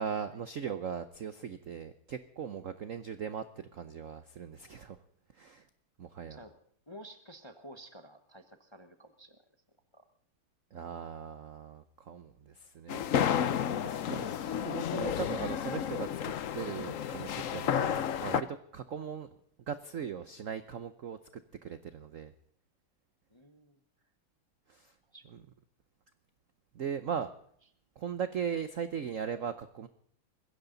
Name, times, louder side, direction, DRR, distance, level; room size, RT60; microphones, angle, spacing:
voice 1, 0.0-5.0 5.3-5.7 6.0-6.4 10.7-19.4 19.7-22.3 24.7-24.9 25.3-25.4 26.7-27.3 28.0-29.9, right 7 dB, 70° right, 11 dB, 0.7 m, -39 dB
voice 2, 6.9-9.4 9.9-10.1 23.3-23.8 25.1-25.3, equal, 20° left, 7 dB, 0.7 m, -51 dB
sound 1, 12.9-18.4, left 9 dB, 85° left, 0.7 m, -31 dB
21.0 x 16.0 x 3.9 m, 0.64 s
omnidirectional pair, 2.4 m